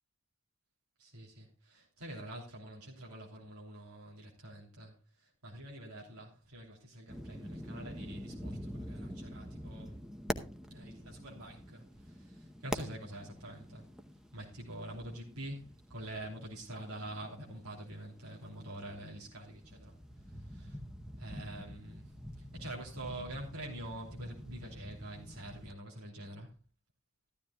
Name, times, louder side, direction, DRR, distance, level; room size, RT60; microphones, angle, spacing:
voice 1, 1.0-10.1 10.7-13.9 14.3-20.8 21.2-26.5, right 1 dB, 90° right, 3.2 m, -46 dB
sound 1, 7.1-25.7, equal, 5° right, 0.8 m, -46 dB
14.5 x 12.5 x 2.3 m
head